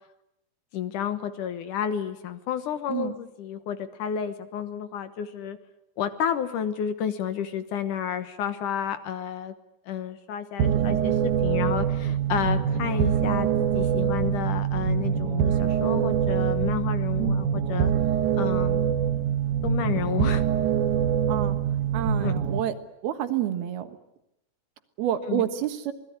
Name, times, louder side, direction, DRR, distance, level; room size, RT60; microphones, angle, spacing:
voice 1, 0.7-5.6 6.0-9.5 9.9-11.1 11.4-17.9 18.4-18.9 19.6-20.4 22.2-22.3 25.2-25.4, left 9 dB, 65° left, 10 dB, 2.5 m, -31 dB
sound 1, 10.6-22.6, right 8 dB, 65° right, 2.4 m, -24 dB
voice 2, 10.6-11.0 17.2-17.4 21.3-21.6 21.9-22.8 23.0-24.0 25.0-25.9, right 11 dB, 85° right, 8 dB, 3.5 m, -29 dB
26.5 x 20.0 x 9.8 m, 0.86 s
omnidirectional pair, 4.3 m